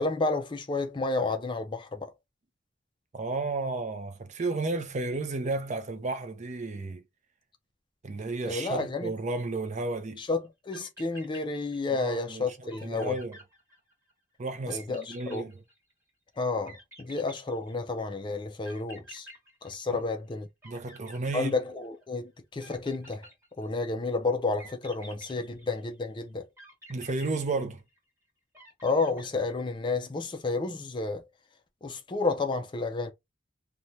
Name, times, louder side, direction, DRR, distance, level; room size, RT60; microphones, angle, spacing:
voice 1, 0.0-2.1 8.5-9.1 10.2-13.2 14.7-15.4 16.4-19.3 19.6-20.5 21.3-23.2 23.6-26.4 28.8-31.2 31.8-33.1, left 3 dB, 25° left, 0.4 m, -31 dB
voice 2, 3.1-7.0 8.0-10.2 11.9-13.4 14.4-15.6 19.9-20.0 20.6-21.5 26.9-27.8, right 3 dB, 35° right, 0.5 m, -33 dB
sound 1, 10.4-10.5 10.7-12.1 12.4-12.5 12.7-14.1 14.7-16.1 16.7-18.0 18.6-20.3 20.6-22.0 22.6-23.8 24.6-26.0 26.6-28.1 28.5-29.8, right 1 dB, 15° right, 1.2 m, -51 dB
3.1 x 2.2 x 2.7 m
head